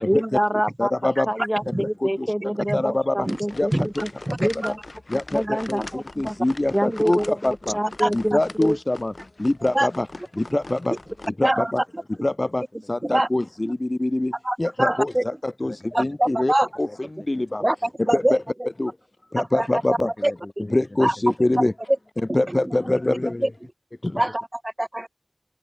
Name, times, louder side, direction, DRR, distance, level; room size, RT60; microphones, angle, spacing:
voice 1, 0.0-4.1 4.4-4.8 5.3-5.9 6.1-6.4 6.7-7.4 7.7-8.8, equal, 10° right, 1.3 m, -26 dB
voice 2, 0.8-1.3 1.7-1.8 2.0-2.3 2.7-3.3 3.6-4.0 4.4-4.5 5.1-7.8 8.1-9.1 9.4-10.1 10.3-11.0 11.4-11.8 12.2-14.3 14.6-17.6 18.0-18.4 18.8-19.0 19.3-20.3 20.7-21.7 22.3-23.5 24.0-24.2, left 1 dB, 50° left, 0.5 m, -24 dB
sound 1, 3.2-11.3, left 2 dB, 80° left, 1.8 m, -41 dB
voice 3, 14.4-15.2 15.9-16.7 17.6-18.4 19.4-19.7 20.2-20.3 21.0-21.1 22.3-22.7 24.1-25.1, right 1 dB, 35° right, 0.8 m, -24 dB
wide cardioid pair, 45°, 0 cm